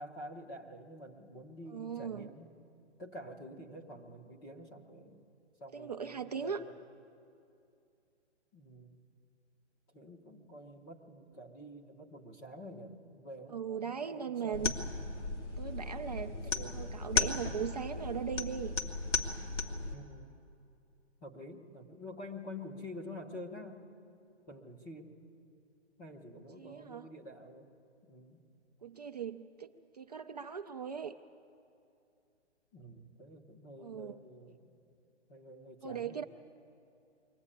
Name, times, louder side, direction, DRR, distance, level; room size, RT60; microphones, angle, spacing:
voice 1, 0.0-2.5 3.0-5.3 5.6-6.8 8.5-9.0 9.9-14.8 16.2-16.9 19.8-20.4 21.2-23.8 24.5-25.1 26.0-27.7 28.1-28.4 32.7-34.8 35.3-36.2, left 1 dB, 10° left, 0 dB, 0.6 m, -48 dB
voice 2, 1.7-2.3 5.7-6.6 13.5-14.7 15.6-18.8 26.5-27.1 28.8-31.1 33.8-34.1 35.8-36.2, right 7 dB, 35° right, 5 dB, 0.5 m, -39 dB
sound 1, 14.5-19.9, left 3 dB, 90° left, 2.5 m, -35 dB
23.0 x 16.0 x 9.8 m, 2.6 s
hypercardioid pair, 155°, 35 cm